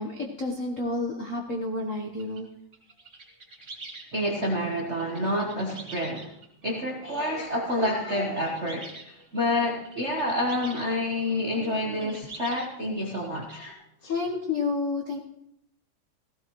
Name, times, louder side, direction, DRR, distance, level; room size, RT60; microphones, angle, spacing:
voice 1, 0.0-2.5 14.1-15.2, left 3 dB, 80° left, 0 dB, 0.7 m, -30 dB
sound 1, 2.2-2.4 2.7-10.9 11.3-12.7 12.9-13.5, right 3 dB, 25° right, 2.3 m, -45 dB
voice 2, 4.1-6.3 6.6-13.8 14.0-14.1, left 1 dB, 55° right, -2 dB, 0.7 m, -28 dB
17.0 x 16.0 x 3.1 m, 0.76 s
omnidirectional pair, 3.3 m